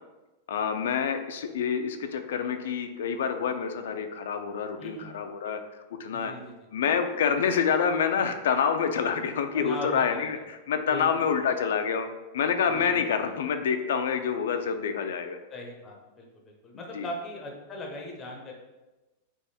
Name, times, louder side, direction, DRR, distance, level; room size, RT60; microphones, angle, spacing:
voice 1, 0.5-5.6 6.0-6.3 6.7-12.1 12.3-15.4 16.9-17.1, left 7 dB, 85° left, 7 dB, 0.4 m, -27 dB
voice 2, 6.1-6.5 9.5-10.4 10.9-11.1 12.7-13.1 15.5-18.5, left 1 dB, 15° left, 0 dB, 0.7 m, -39 dB
3.5 x 3.1 x 4.2 m, 1.1 s
supercardioid pair, 165°, 0 cm